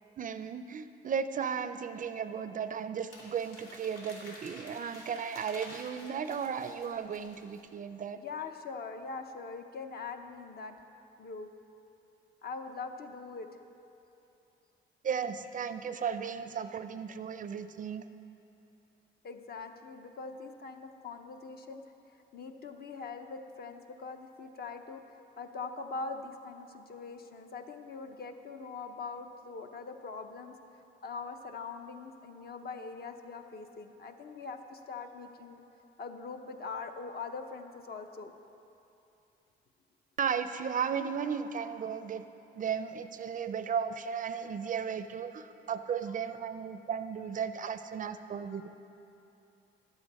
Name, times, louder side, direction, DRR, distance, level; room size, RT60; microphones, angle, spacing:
voice 1, 0.2-8.2 15.0-18.0 40.2-42.2 42.5-48.7, right 7 dB, 45° right, 11 dB, 0.4 m, -35 dB
Crumpling crinkling, 3.1-7.7, left 1 dB, 85° left, 2.1 m, -51 dB
voice 2, 8.1-10.8 11.2-11.5 12.4-13.6 19.2-21.8 22.3-25.0 25.4-30.5 31.0-35.6 36.0-38.3 46.3-46.4 48.3-48.7, left 4 dB, 50° left, 6 dB, 0.7 m, -42 dB
11.5 x 8.0 x 4.1 m, 2.8 s
cardioid pair, 90°, 20 cm